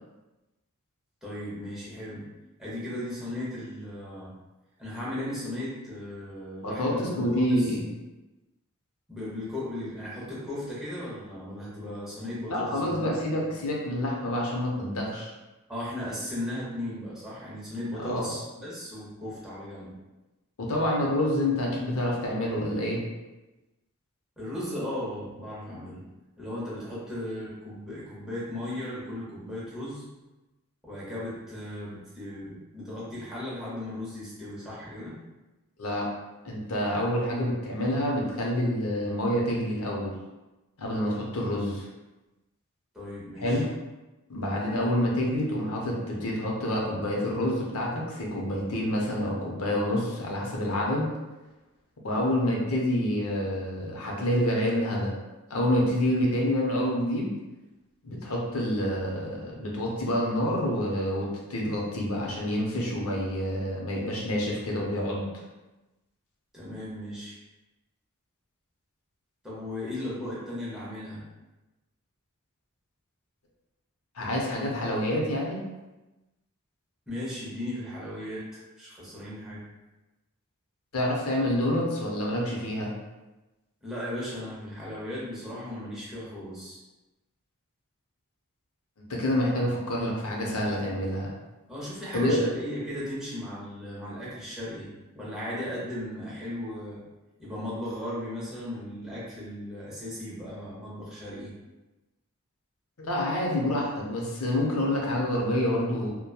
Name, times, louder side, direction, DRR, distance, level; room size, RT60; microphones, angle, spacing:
voice 1, 1.2-2.2 2.6-4.3 4.8-7.7 9.1-13.5 15.7-20.0 24.4-26.0 26.4-30.1 30.8-35.2 42.9-43.6 66.5-67.3 69.4-71.2 77.1-79.7 83.8-86.8 91.7-97.0 97.4-101.5, left 1 dB, ahead, -9 dB, 0.7 m, -36 dB
voice 2, 6.6-7.9 12.5-15.3 18.0-18.3 20.6-23.0 35.8-36.1 36.4-40.1 40.8-41.9 43.4-43.7 44.3-51.1 52.0-55.1 55.5-57.3 58.0-65.3 74.2-75.6 80.9-82.9 89.1-91.3 92.1-92.4 103.0-106.1, left 1 dB, 70° left, -2 dB, 0.6 m, -27 dB
2.8 x 2.1 x 2.2 m, 1.1 s
head